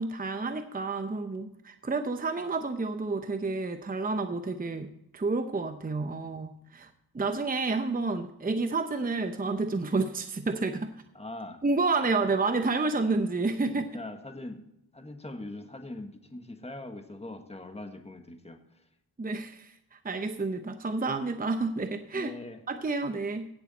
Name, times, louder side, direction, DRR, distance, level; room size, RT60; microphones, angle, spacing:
voice 1, 0.0-10.9 11.6-13.9 19.2-22.3 22.7-23.5, right 3 dB, 20° right, 8 dB, 0.8 m, -30 dB
voice 2, 11.1-11.6 13.7-18.8 22.1-22.6, left 2 dB, 15° left, 6 dB, 1.5 m, -42 dB
17.0 x 6.9 x 4.1 m, 0.80 s
cardioid pair, 70°, 40 cm